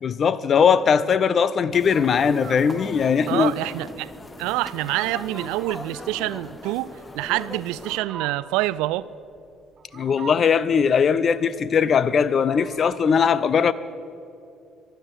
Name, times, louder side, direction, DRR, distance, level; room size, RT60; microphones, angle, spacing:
voice 1, 0.0-3.5 9.9-13.7, left 6 dB, 45° left, 0.6 m, -20 dB
sound 1, 1.7-8.0, left 2 dB, 20° left, 1.0 m, -39 dB
Fowl, 2.2-13.2, right 7 dB, 40° right, 1.5 m, -44 dB
voice 2, 3.3-4.1 4.4-9.1, right 17 dB, 65° right, 0.3 m, -26 dB
24.5 x 10.0 x 4.9 m
figure-of-eight pair, 50°, 0 cm